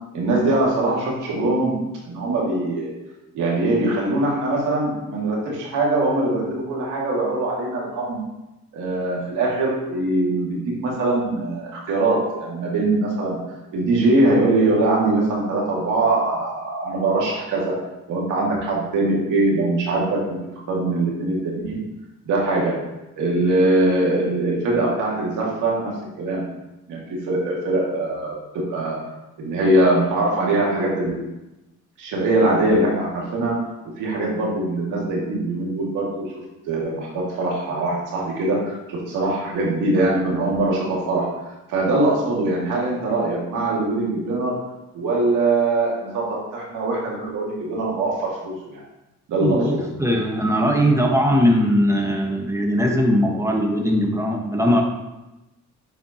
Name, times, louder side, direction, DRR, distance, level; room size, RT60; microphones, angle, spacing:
voice 1, 0.1-1.7 2.0-2.9 3.3-8.2 8.7-13.4 13.7-17.7 18.1-20.4 20.7-21.8 22.3-22.7 23.2-25.9 26.2-26.4 26.9-29.0 29.4-31.2 32.0-33.6 34.0-36.3 36.7-41.3 41.7-44.6 44.9-48.8 49.3-49.8, right 2 dB, 85° right, -4 dB, 2.2 m, -22 dB
voice 2, 49.4-54.8, equal, 10° right, 1 dB, 1.2 m, -20 dB
9.7 x 4.3 x 2.9 m, 1.0 s
cardioid pair, 90°, 30 cm